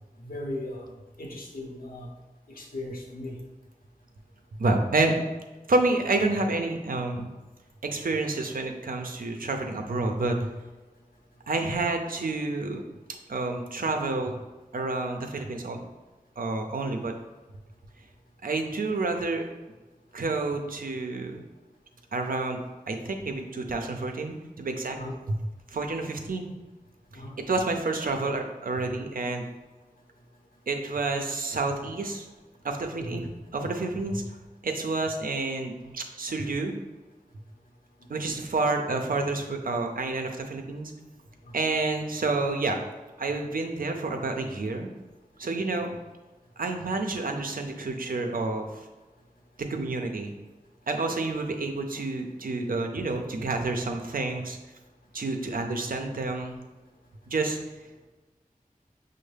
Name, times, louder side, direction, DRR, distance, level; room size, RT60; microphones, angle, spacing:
voice 1, 0.2-0.9 1.2-2.1 2.6-3.4 24.9-25.2 27.1-27.4 33.0-33.2 38.2-38.4, left 1 dB, 85° left, -1 dB, 0.8 m, -37 dB
voice 2, 4.6-5.2 5.7-7.3 7.8-10.5 11.5-12.8 13.3-14.4 14.7-15.8 16.4-17.1 18.4-19.4 20.1-21.4 22.1-22.6 22.9-25.0 25.3-25.4 25.7-26.5 27.5-29.4 30.7-32.3 32.6-33.2 33.5-34.2 34.6-36.7 38.1-40.9 41.5-42.8 43.2-44.9 45.4-45.9 46.6-48.7 49.7-50.3 50.9-54.6 55.1-56.6 57.3-57.6, right 3 dB, 75° right, 4 dB, 0.5 m, -29 dB
5.2 x 2.1 x 3.3 m, 1.2 s
wide cardioid pair, 45°, 15 cm